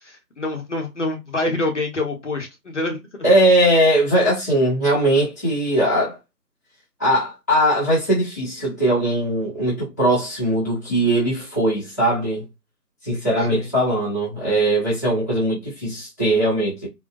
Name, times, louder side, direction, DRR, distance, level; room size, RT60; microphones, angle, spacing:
voice 1, 0.0-3.3 13.4-13.7, left 2 dB, 45° left, 0.8 m, -27 dB
voice 2, 3.2-6.2 7.0-12.5 13.0-16.9, right 1 dB, 10° left, 0.8 m, -20 dB
3.8 x 2.2 x 2.5 m
figure-of-eight pair, 150°, 50 cm